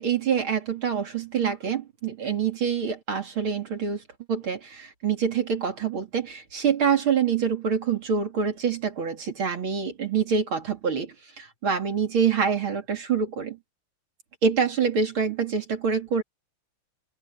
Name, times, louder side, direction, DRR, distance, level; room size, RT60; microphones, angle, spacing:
voice 1, 0.0-4.0 4.3-13.6 14.4-16.2, right 6 dB, 70° right, 3.6 m, -26 dB
open air
omnidirectional pair, 2.4 m